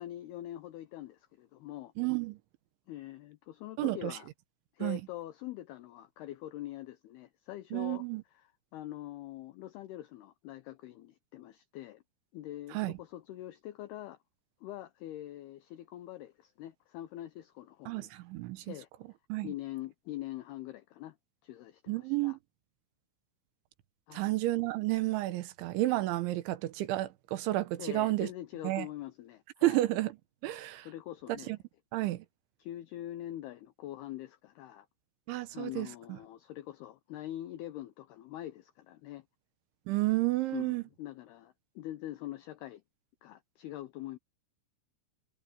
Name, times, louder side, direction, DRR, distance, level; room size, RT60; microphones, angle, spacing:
voice 1, 0.0-1.9 2.9-4.3 4.7-8.0 8.7-12.0 12.3-14.2 14.6-18.1 18.6-18.9 19.4-21.2 21.4-22.4 24.1-24.3 27.8-29.8 30.9-31.5 32.6-34.9 35.5-39.2 40.5-42.8 43.2-44.2, left 14 dB, 85° left, 2.3 m, -44 dB
voice 2, 2.0-2.4 3.8-4.2 4.8-5.0 7.7-8.2 12.7-13.0 17.9-18.7 19.3-19.5 21.9-22.4 24.1-28.3 28.6-28.9 29.6-30.2 30.4-30.9 31.3-31.6 31.9-32.3 35.3-36.2 39.9-40.8, right 17 dB, 75° right, 3.4 m, -31 dB
omnidirectional pair, 5.6 m